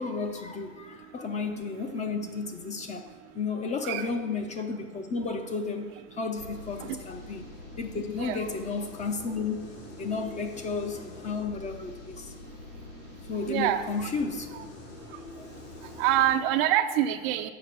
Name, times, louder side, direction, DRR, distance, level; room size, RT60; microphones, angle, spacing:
voice 1, 0.0-3.1 3.3-7.5 7.8-12.3 13.3-14.5 15.4-15.5, left 4 dB, 20° left, 5 dB, 0.5 m, -33 dB
sound 1, 6.4-16.4, left 3 dB, 70° left, 2.2 m, -45 dB
voice 2, 13.5-13.8 14.5-14.6 16.0-17.5, right 12 dB, 45° right, 9 dB, 0.5 m, -25 dB
6.7 x 5.0 x 6.8 m, 1.4 s
hypercardioid pair, 110°, 40 cm